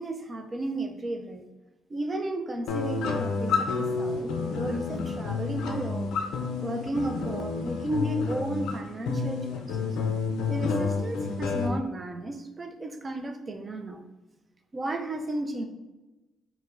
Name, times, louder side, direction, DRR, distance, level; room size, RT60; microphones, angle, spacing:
voice 1, 0.0-1.4 1.9-6.2 6.6-9.9 10.5-14.0 14.7-15.6, right 1 dB, 25° right, 5 dB, 0.3 m, -33 dB
sound 1, 2.7-11.7, left 4 dB, 85° left, 0.4 m, -30 dB
4.4 x 2.0 x 2.4 m, 1.1 s
cardioid pair, 115°, 0 cm